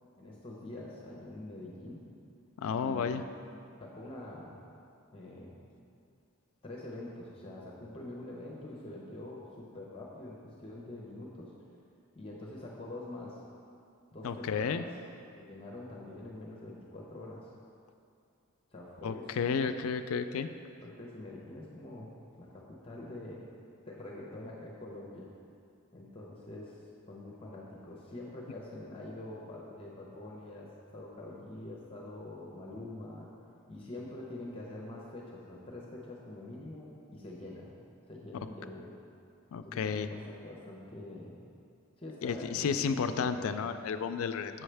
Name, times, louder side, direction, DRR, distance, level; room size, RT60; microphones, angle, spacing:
voice 1, 0.2-2.0 2.6-3.2 3.5-4.6 5.1-5.6 6.6-11.5 12.2-13.4 14.1-14.9 15.3-17.5 18.7-19.7 20.4-20.5 20.8-22.1 22.4-23.4 23.9-25.3 25.9-33.3 33.7-37.7 38.1-38.9 39.6-41.4 42.0-43.7, left 1 dB, 25° left, -3 dB, 0.7 m, -45 dB
voice 2, 2.6-3.2 14.2-14.8 19.0-20.5 38.3-38.5 39.5-40.1 42.2-44.6, left 6 dB, 75° left, 9 dB, 0.3 m, -32 dB
7.5 x 6.3 x 3.3 m, 2.5 s
head